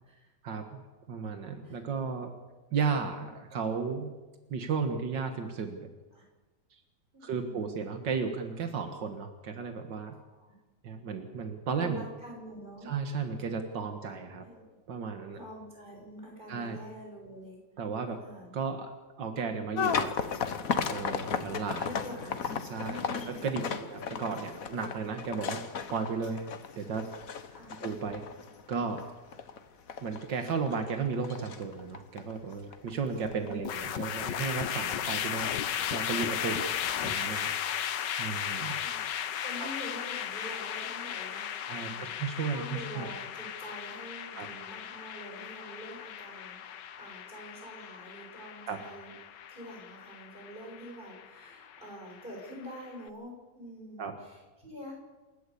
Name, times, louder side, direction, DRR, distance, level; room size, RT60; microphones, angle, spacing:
voice 1, 1.1-2.3 2.7-4.1 4.5-5.9 7.2-10.2 10.8-12.0 12.9-14.4 14.9-15.4 16.5-16.8 17.8-18.2 18.5-18.9 19.2-20.1 20.9-21.9 22.7-25.6 25.9-26.4 26.8-27.1 27.8-28.2 28.7-29.0 30.0-35.5 35.9-36.6 37.0-37.9 38.2-38.7 39.6-39.7 41.7-43.1 44.4-44.5 48.7-48.8 54.0-54.1, right 5 dB, 80° right, 6 dB, 2.1 m, -34 dB
voice 2, 7.1-8.0 10.4-10.6 11.7-12.9 14.1-14.6 15.3-17.6 18.2-18.5 21.8-23.6 27.5-27.7 33.4-33.7 36.5-36.7 38.7-39.1 39.4-41.5 41.7-42.1 42.5-49.1 49.5-54.9, equal, 25° right, -1 dB, 6.9 m, -46 dB
sound 1, 19.8-34.8 35.1-35.7 36.4-36.5 36.9-37.2, left 6 dB, 55° left, 1.5 m, -36 dB
sound 2, 33.6-52.9, left 9 dB, 80° left, 1.6 m, -36 dB
28.5 x 12.5 x 8.4 m, 1.2 s
omnidirectional pair, 1.9 m